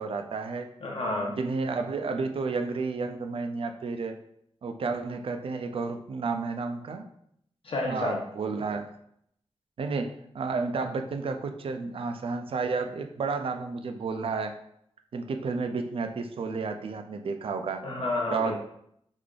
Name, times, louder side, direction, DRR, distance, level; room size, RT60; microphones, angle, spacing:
voice 1, 0.0-0.7 1.4-4.2 4.6-7.0 7.9-8.9 9.8-14.5 15.1-17.9 18.3-18.5, right 4 dB, 60° right, 6 dB, 0.4 m, -31 dB
voice 2, 0.8-1.3 7.6-8.2 17.8-18.5, left 2 dB, 55° left, -1 dB, 0.8 m, -30 dB
3.7 x 3.3 x 2.4 m, 0.71 s
wide cardioid pair, 155°, 11 cm